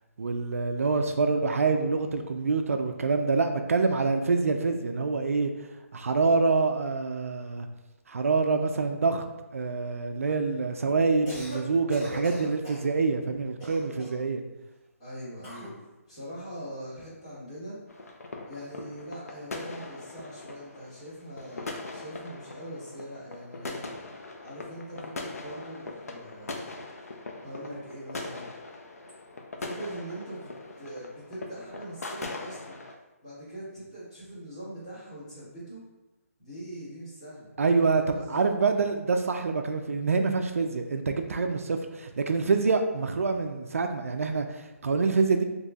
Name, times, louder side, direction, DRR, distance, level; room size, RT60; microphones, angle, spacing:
voice 1, 0.2-5.5 5.9-7.7 8.1-9.2 9.5-14.4 37.6-45.4, right 4 dB, 70° right, 6 dB, 0.4 m, -26 dB
voice 2, 1.0-1.4 15.0-17.8 18.5-23.9 24.4-26.6 27.4-28.5 29.5-30.5 30.8-32.8 33.2-35.8 36.4-37.5 37.9-38.3, right 1 dB, 25° left, -10 dB, 1.5 m, -42 dB
Cough, 11.3-11.6 11.9-12.9 13.6-14.3 15.4-15.8, equal, 10° left, 0.5 m, -40 dB
sound 1, 17.9-32.9, left 3 dB, 80° left, 0.5 m, -41 dB
4.0 x 2.9 x 2.3 m, 1.0 s
hypercardioid pair, 180°, 8 cm